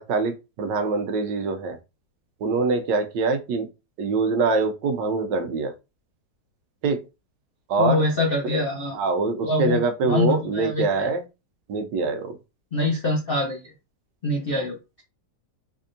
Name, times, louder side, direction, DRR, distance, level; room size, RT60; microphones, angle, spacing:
voice 1, 0.0-1.8 2.4-3.7 4.0-5.7 6.8-7.0 7.7-8.1 8.4-8.6 8.9-11.2 11.7-12.4 14.5-14.7, right 4 dB, 80° right, 6 dB, 1.3 m, -24 dB
voice 2, 7.8-9.0 9.4-11.1 12.7-13.6 14.2-14.8, left 2 dB, 60° left, -1 dB, 0.6 m, -24 dB
3.5 x 3.3 x 2.6 m, 0.27 s
omnidirectional pair, 2.0 m